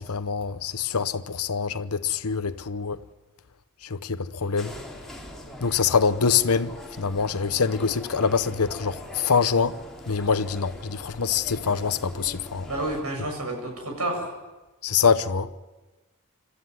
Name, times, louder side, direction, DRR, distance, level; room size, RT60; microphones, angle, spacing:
voice 1, 0.0-3.0 3.9-4.7 5.6-9.8 10.1-12.7 14.8-15.5, left 6 dB, 80° left, 0.9 m, -25 dB
sound 1, 4.6-13.0, left 1 dB, ahead, 4.1 m, -42 dB
voice 2, 12.7-14.3, right 1 dB, 80° right, 7.5 m, -30 dB
26.5 x 13.0 x 9.6 m
head